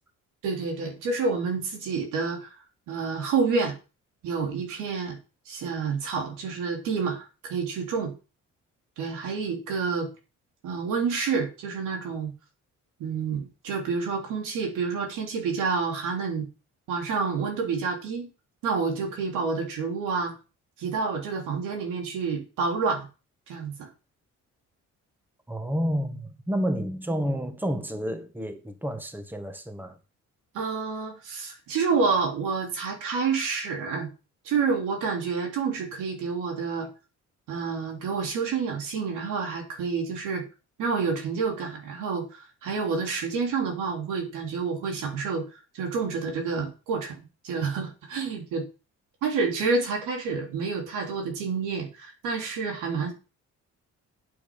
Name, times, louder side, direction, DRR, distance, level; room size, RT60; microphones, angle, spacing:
voice 1, 0.4-2.5 2.9-3.7 4.2-5.2 5.5-8.1 9.0-10.1 10.6-12.3 13.0-16.5 16.9-18.3 18.6-20.3 20.8-23.1 23.5-23.9 30.5-34.1 34.5-36.9 37.5-40.4 40.8-45.4 45.7-47.2 47.4-48.6 49.2-53.1, right 5 dB, 90° right, 3.5 m, -28 dB
voice 2, 25.5-30.0, equal, 5° right, 1.7 m, -30 dB
8.7 x 7.7 x 5.5 m
cardioid pair, 90°, 30 cm